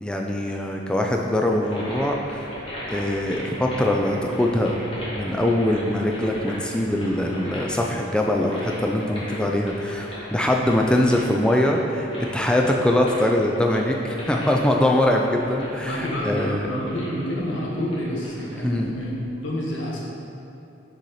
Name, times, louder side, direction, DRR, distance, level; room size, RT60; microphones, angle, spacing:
voice 1, 0.0-2.4 2.9-4.8 5.1-16.7 18.6-18.9, left 1 dB, 5° left, 1 dB, 0.4 m, -22 dB
sound 1, 1.6-19.1, equal, 30° left, 1.4 m, -39 dB
voice 2, 15.8-20.0, equal, 90° left, -4 dB, 1.3 m, -28 dB
6.6 x 4.2 x 4.8 m, 2.8 s
head